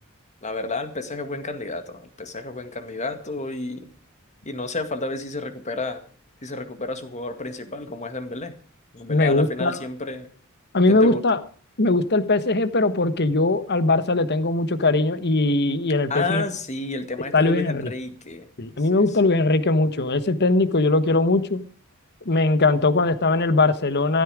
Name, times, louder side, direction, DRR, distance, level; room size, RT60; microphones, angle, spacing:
voice 1, 0.4-3.9 4.5-6.0 6.4-8.5 8.9-10.3 10.9-11.2 16.1-18.5 18.9-19.0, left 3 dB, 35° left, 2.0 m, -31 dB
voice 2, 9.1-9.8 10.7-11.4 11.8-16.4 17.3-17.9 18.6-21.6 22.2-24.2, left 2 dB, 50° left, 1.3 m, -20 dB
15.0 x 13.5 x 5.0 m
head